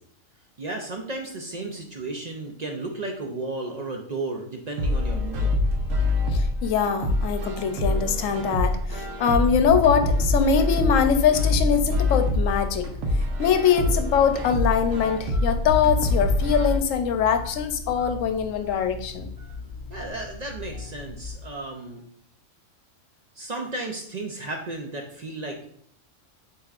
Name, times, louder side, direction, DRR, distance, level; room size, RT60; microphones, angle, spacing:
voice 1, 0.6-5.5 19.9-22.0 23.4-25.7, right 2 dB, 60° right, 2 dB, 0.4 m, -34 dB
sound 1, 4.8-16.8, left 1 dB, 85° right, 1.1 m, -25 dB
voice 2, 6.3-12.9 13.4-19.3, left 7 dB, 80° left, 7 dB, 1.0 m, -23 dB
Telephone, 11.9-21.6, left 3 dB, 35° right, 2.3 m, -39 dB
7.7 x 2.9 x 2.4 m, 0.65 s
omnidirectional pair, 1.3 m